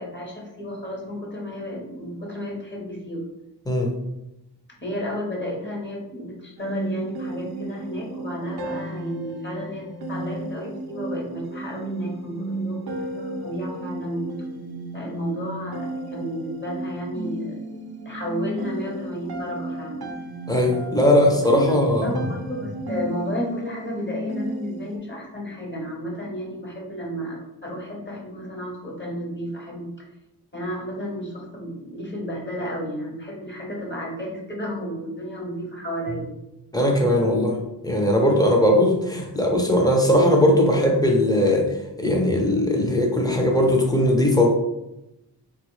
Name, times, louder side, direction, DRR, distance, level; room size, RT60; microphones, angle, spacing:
voice 1, 0.0-3.2 4.8-14.3 14.9-17.6 18.0-20.1 21.7-30.0 30.5-36.3, equal, 25° left, -2 dB, 0.9 m, -32 dB
voice 2, 3.7-4.0 20.5-22.1 36.7-37.6 37.8-44.5, left 1 dB, 10° left, 0 dB, 0.6 m, -19 dB
sound 1, 6.6-25.0, right 2 dB, 65° right, 0.6 m, -33 dB
3.4 x 2.4 x 3.0 m, 0.91 s
wide cardioid pair, 75°, 41 cm